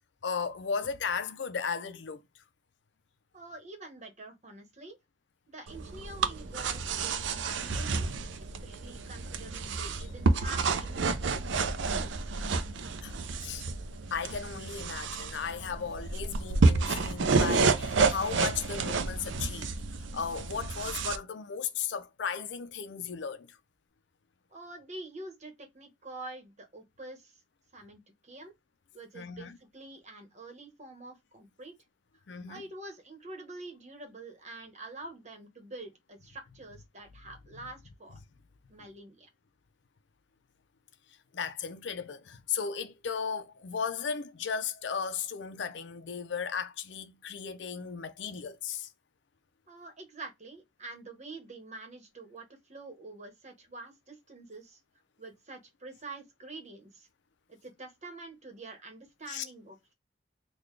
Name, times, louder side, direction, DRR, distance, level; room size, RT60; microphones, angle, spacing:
voice 1, 0.2-2.2 13.0-13.6 14.1-19.7 20.1-23.6 29.1-29.6 32.3-32.6 41.3-48.9 59.3-59.5, left 6 dB, 70° left, 0.5 m, -35 dB
voice 2, 3.3-5.0 5.5-8.1 8.4-12.3 24.5-27.4 27.7-28.5 28.9-31.8 32.5-38.2 38.7-39.3 49.7-54.8 55.2-57.1 57.5-59.9, right 2 dB, 40° right, 1.1 m, -46 dB
sound 1, 5.7-21.2, right 4 dB, 90° right, 0.5 m, -30 dB
3.9 x 2.3 x 3.1 m
head